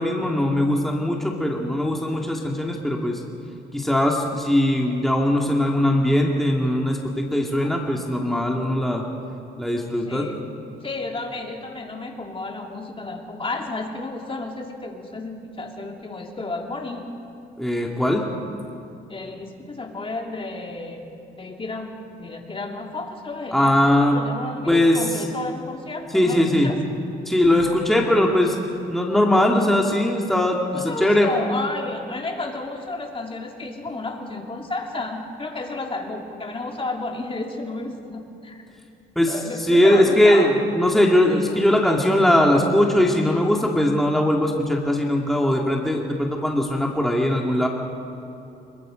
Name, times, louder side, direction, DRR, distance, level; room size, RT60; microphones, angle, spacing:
voice 1, 0.0-3.2 3.7-9.0 9.6-10.3 17.6-18.3 23.5-24.2 24.7-25.0 26.1-26.7 27.3-28.6 28.9-31.3 39.2-39.3 39.7-47.7, left 1 dB, ahead, -1 dB, 2.5 m, -20 dB
voice 2, 10.1-10.5 10.8-17.1 19.1-21.0 21.4-26.8 30.7-38.6 39.3-40.5, left 2 dB, 25° left, 1 dB, 2.9 m, -32 dB
26.5 x 22.5 x 5.2 m, 2.7 s
cardioid pair, 90°, 20 cm